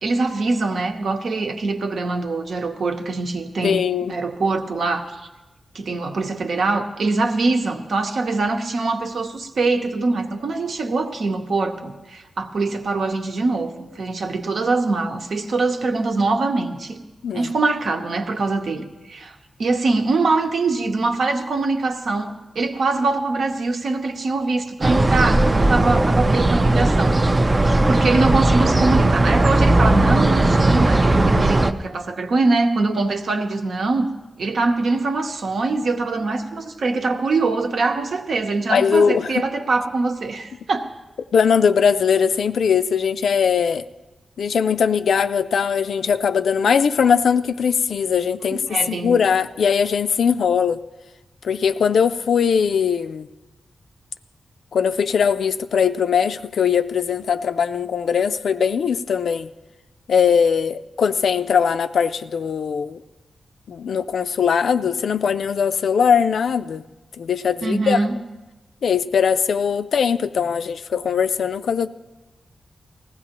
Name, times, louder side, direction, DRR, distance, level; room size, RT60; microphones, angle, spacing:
voice 1, 0.0-3.8 4.1-5.2 5.7-17.0 17.3-27.2 27.4-34.1 34.4-40.9 48.5-49.1 67.6-68.2, right 3 dB, 65° right, 0.9 m, -23 dB
voice 2, 3.6-4.1 17.2-17.5 31.4-31.5 38.7-39.4 41.3-43.8 44.4-50.8 51.4-53.3 54.7-59.5 60.1-63.0 63.7-66.8 67.2-68.0 68.8-71.9, left 7 dB, 85° left, 0.4 m, -20 dB
sound 1, 24.8-31.7, right 2 dB, 20° right, 0.4 m, -17 dB
19.5 x 15.0 x 2.9 m
wide cardioid pair, 150°, 0 cm